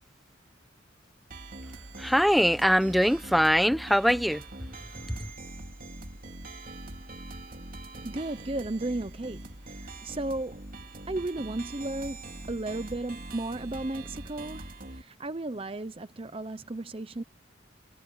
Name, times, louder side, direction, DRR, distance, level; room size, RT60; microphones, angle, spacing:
sound 1, 1.3-15.0, right 2 dB, 45° right, 3.0 m, -43 dB
voice 1, 2.0-4.4 5.1-5.3, equal, ahead, 1.0 m, -23 dB
voice 2, 8.0-10.5 11.1-14.7 15.0-17.2, right 2 dB, 30° right, 0.7 m, -34 dB
head